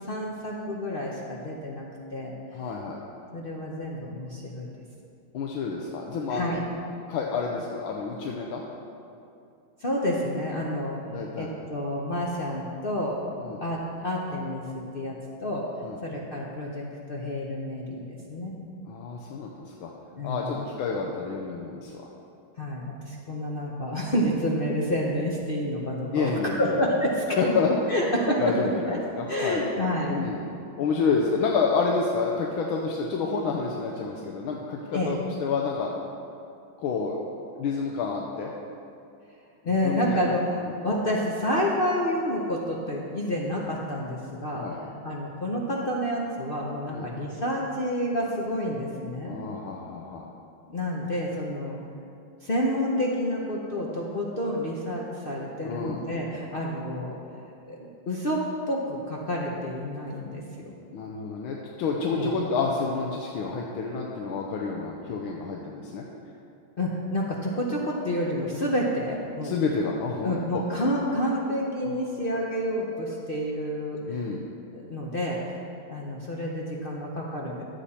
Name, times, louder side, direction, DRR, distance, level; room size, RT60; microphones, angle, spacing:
voice 1, 0.1-1.8 2.1-2.3 3.3-4.7 6.3-6.6 9.8-13.2 13.6-15.1 15.4-15.6 16.0-18.5 20.1-20.6 22.6-26.3 26.6-27.5 27.9-28.5 28.9-29.0 29.3-30.1 34.9-35.2 39.6-44.6 45.0-49.4 50.7-51.8 52.4-57.1 57.7-60.7 62.1-62.3 66.8-69.6 70.2-74.3 74.7-75.6 75.9-77.6, equal, 55° left, -3 dB, 0.6 m, -29 dB
voice 2, 2.5-3.0 5.3-6.6 7.1-8.6 11.0-11.5 13.4-13.6 15.8-16.0 18.9-19.9 20.2-22.0 26.1-26.8 27.3-28.1 28.4-29.6 30.1-30.4 30.8-35.9 36.8-37.2 37.5-38.5 39.8-40.4 44.5-44.8 46.9-47.1 49.2-50.3 55.6-56.0 60.9-66.0 69.4-70.6 71.8-71.9 74.1-74.4, left 4 dB, 80° left, -1 dB, 1.6 m, -29 dB
12.0 x 8.1 x 4.2 m, 2.6 s
omnidirectional pair, 2.3 m